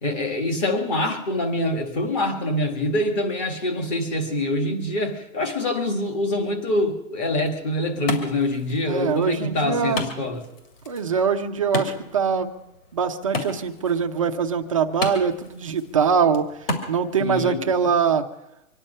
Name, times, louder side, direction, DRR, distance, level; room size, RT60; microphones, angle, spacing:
voice 1, 0.0-10.4 17.2-17.6, left 1 dB, 20° left, 5 dB, 1.7 m, -25 dB
Wood, 7.3-17.3, left 2 dB, 40° left, 2.5 m, -35 dB
voice 2, 8.9-10.1 10.9-12.5 12.9-16.5 16.9-18.3, right 6 dB, 25° right, 4 dB, 0.6 m, -23 dB
25.0 x 10.5 x 5.5 m, 0.90 s
hypercardioid pair, 170°, 42 cm